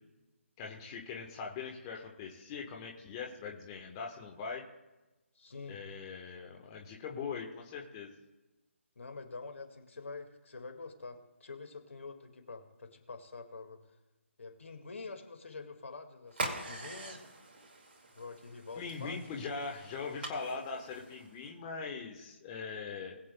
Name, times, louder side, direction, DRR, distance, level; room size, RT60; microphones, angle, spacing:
voice 1, 0.6-4.6 5.7-8.1 18.7-23.2, left 5 dB, 25° left, 0 dB, 1.1 m, -41 dB
voice 2, 5.4-5.8 9.0-13.8 14.4-17.2 18.2-19.4, left 4 dB, 70° left, 6 dB, 1.9 m, -46 dB
sound 1, 16.3-21.5, right 2 dB, 50° right, 1.8 m, -43 dB
21.0 x 8.3 x 2.2 m, 1.1 s
figure-of-eight pair, 150°, 7 cm